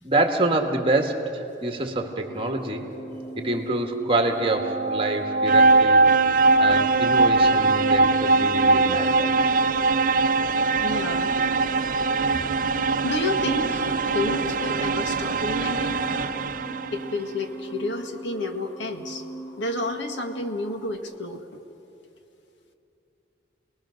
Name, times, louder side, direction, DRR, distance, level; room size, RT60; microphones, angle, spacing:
voice 1, 0.0-3.0 3.4-6.1 6.6-9.5 12.8-12.9, right 2 dB, 30° right, 4 dB, 1.9 m, -26 dB
sound 1, 1.9-21.0, right 2 dB, 15° left, 3.3 m, -41 dB
sound 2, 4.3-17.1, right 3 dB, 50° right, 0.5 m, -21 dB
voice 2, 10.8-11.3 13.0-16.1 16.9-19.2 19.6-21.4, left 2 dB, 85° left, 5 dB, 1.8 m, -30 dB
29.5 x 20.0 x 6.5 m, 2.7 s
head